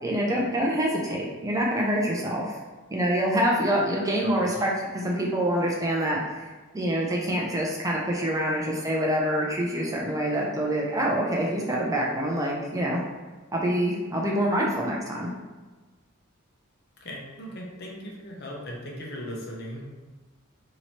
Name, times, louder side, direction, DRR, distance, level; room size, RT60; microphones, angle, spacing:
voice 1, 0.0-2.6 2.9-13.0 13.5-15.3, equal, 15° right, -2 dB, 0.4 m, -26 dB
voice 2, 4.2-4.7 17.0-19.9, equal, 50° left, -2 dB, 0.8 m, -38 dB
3.0 x 2.8 x 4.2 m, 1.3 s
head